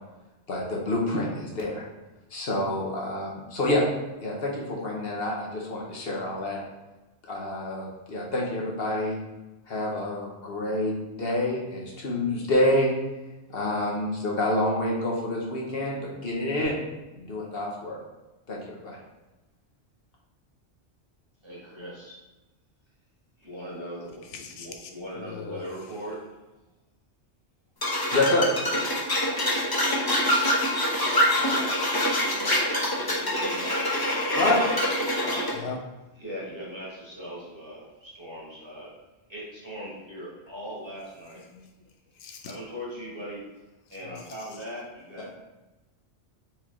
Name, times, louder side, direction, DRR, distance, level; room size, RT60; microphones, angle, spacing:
voice 1, 0.5-1.8 2.3-3.9 4.2-6.6 7.2-9.2 9.7-10.9 11.2-12.9 13.5-16.8 17.1-18.0 18.5-19.0 28.1-28.5 34.3-34.7, left 1 dB, 60° left, -2 dB, 1.1 m, -27 dB
voice 2, 21.4-22.2 23.4-26.2 30.4-34.3 35.2-35.6 36.2-38.9 39.3-41.4 42.4-43.5 43.9-45.4, equal, 25° right, -7 dB, 1.4 m, -40 dB
voice 3, 24.3-24.9 25.2-25.7 35.5-35.8 41.5-41.7 42.1-42.5 44.0-44.5, left 5 dB, 90° left, 3 dB, 0.9 m, -40 dB
sound 1, 27.8-35.5, left 1 dB, 20° left, 0.8 m, -25 dB
4.5 x 3.1 x 3.6 m, 1.1 s
omnidirectional pair, 1.2 m